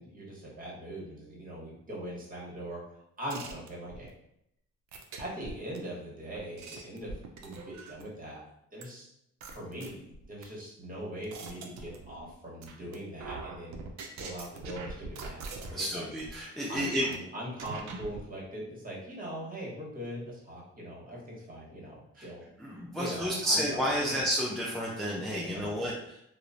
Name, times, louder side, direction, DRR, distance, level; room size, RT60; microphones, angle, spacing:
voice 1, 0.0-2.8 3.2-4.1 5.2-8.4 8.7-9.1 9.5-13.9 14.2-15.4 15.7-16.1 16.7-24.2 25.4-25.8, equal, 30° right, -4 dB, 1.1 m, -41 dB
sound 1, 3.3-4.1 4.9-5.8 6.3-8.1 8.8-8.9 9.4-10.4 10.9-12.3 12.6-12.9 13.2-15.9 16.2-16.3 16.7-17.2 17.6-18.2, right 4 dB, 70° right, 0.5 m, -43 dB
voice 2, 15.7-17.1 22.2-22.3 22.6-26.2, equal, ahead, -5 dB, 0.4 m, -31 dB
2.9 x 2.0 x 2.4 m, 0.77 s
cardioid pair, 90°, 30 cm